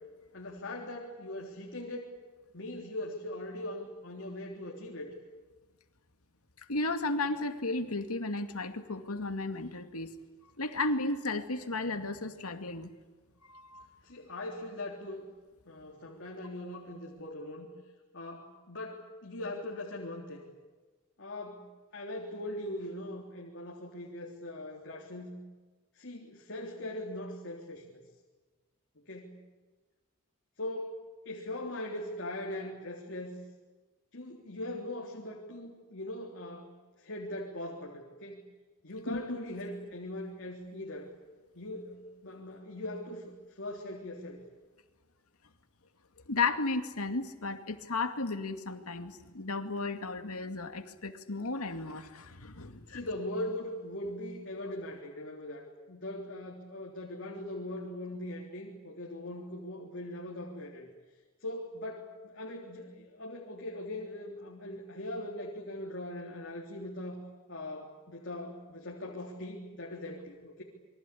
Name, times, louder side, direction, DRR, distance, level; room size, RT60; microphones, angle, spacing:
voice 1, 0.3-2.1 2.5-5.1 14.0-15.3 15.7-17.7 18.1-20.4 21.2-21.7 21.9-25.4 26.0-28.0 29.1-29.4 30.6-31.0 31.3-33.4 34.1-36.7 37.0-38.4 38.8-41.1 41.5-44.4 52.9-60.9 61.4-67.2 67.5-70.6, left 1 dB, 60° left, -1 dB, 3.7 m, -40 dB
voice 2, 6.6-10.1 10.6-12.9 13.5-13.9 39.1-39.4 46.3-53.0, left 3 dB, 90° left, 7 dB, 2.3 m, -34 dB
28.5 x 23.5 x 8.5 m, 1.3 s
head